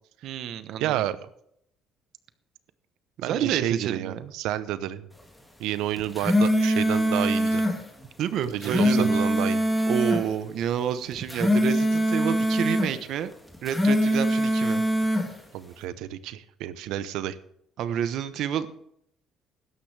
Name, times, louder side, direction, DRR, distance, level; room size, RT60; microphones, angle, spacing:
voice 1, 0.2-1.0 3.2-4.3 8.2-9.1 9.9-13.3 13.6-14.8 17.8-18.7, right 9 dB, 65° right, 12 dB, 1.0 m, -29 dB
voice 2, 0.8-1.2 3.2-5.1 5.6-7.6 8.5-9.6 15.5-17.4, right 12 dB, 90° right, 14 dB, 0.8 m, -30 dB
sound 1, 6.0-7.8 8.4-10.2 11.1-12.9 13.5-15.3, equal, 5° left, 3.1 m, -23 dB
16.5 x 13.0 x 3.4 m, 0.72 s
cardioid pair, 115°, 0 cm